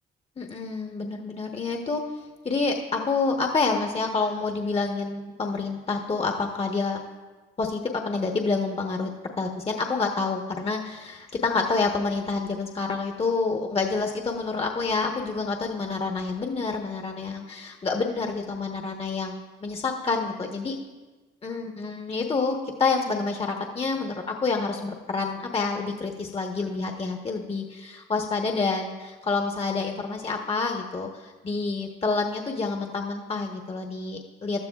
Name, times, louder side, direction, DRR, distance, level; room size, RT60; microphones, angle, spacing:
voice 1, 0.4-2.0 2.4-7.0 7.6-9.1 9.4-20.7 21.4-34.6, left 4 dB, 30° left, 2 dB, 1.0 m, -28 dB
15.5 x 12.0 x 2.3 m, 1.3 s
cardioid pair, 90°, 20 cm